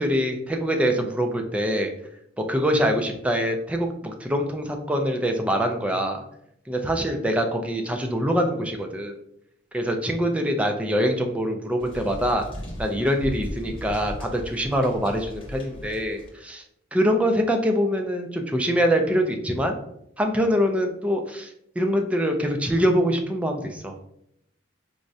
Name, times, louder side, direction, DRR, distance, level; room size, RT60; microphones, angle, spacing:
voice 1, 0.0-1.9 2.5-6.2 6.7-9.1 9.7-12.4 12.8-16.6 16.9-19.8 20.2-23.9, equal, 5° right, 3 dB, 0.3 m, -24 dB
sound 1, 11.8-16.3, equal, 30° left, 0.9 m, -37 dB
4.6 x 2.1 x 2.6 m, 0.75 s
head